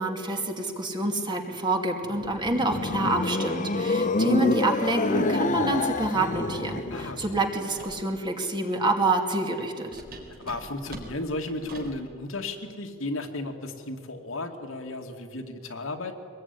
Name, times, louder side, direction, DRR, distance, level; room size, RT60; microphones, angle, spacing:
voice 1, 0.0-10.0, right 2 dB, 20° right, 3 dB, 2.5 m, -27 dB
sound 1, 2.1-7.5, left 2 dB, 40° left, 0.9 m, -27 dB
voice 2, 6.9-7.3 10.4-16.1, left 2 dB, 75° left, 3 dB, 2.4 m, -34 dB
sound 2, 7.7-8.1 9.9-12.0, right 1 dB, 45° right, 4.1 m, -43 dB
23.5 x 20.5 x 9.9 m, 2.3 s
head